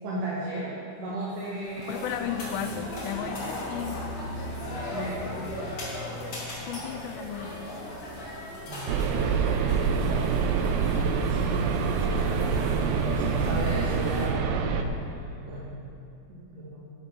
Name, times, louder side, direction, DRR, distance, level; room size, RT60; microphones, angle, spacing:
voice 1, 0.0-2.3 4.9-5.2 8.6-10.4 10.9-11.4 13.2-14.8 15.4-15.7 16.3-16.9, right 1 dB, 55° right, -7 dB, 3.1 m, -35 dB
sound 1, 1.3-14.3, left 1 dB, 35° left, 2.7 m, -37 dB
voice 2, 1.9-4.2 6.6-7.9 12.0-12.2, left 9 dB, 90° left, 8 dB, 2.8 m, -35 dB
sound 2, 8.9-14.8, right 5 dB, 90° right, 2.9 m, -26 dB
11.0 x 9.5 x 6.1 m, 2.5 s
omnidirectional pair, 4.9 m